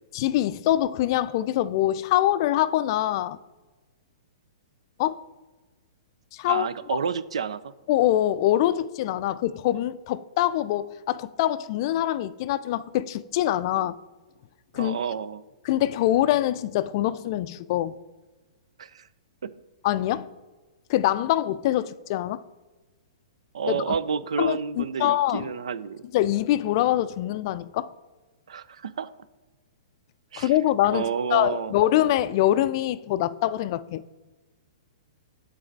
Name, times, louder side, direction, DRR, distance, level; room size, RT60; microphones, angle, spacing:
voice 1, 0.1-3.4 5.0-5.2 6.3-6.7 7.9-13.9 14.7-15.0 15.6-18.0 19.8-20.3 20.9-22.4 23.7-24.0 24.4-25.5 26.1-27.9 30.4-34.0, left 13 dB, 45° left, 0.4 m, -24 dB
voice 2, 6.5-7.7 13.7-13.9 14.7-15.4 18.8-19.1 19.4-19.5 23.5-26.1 28.5-29.1 30.3-30.5 30.9-31.7, right 6 dB, 75° right, 0.4 m, -30 dB
8.6 x 4.1 x 4.6 m
hypercardioid pair, 120°, 3 cm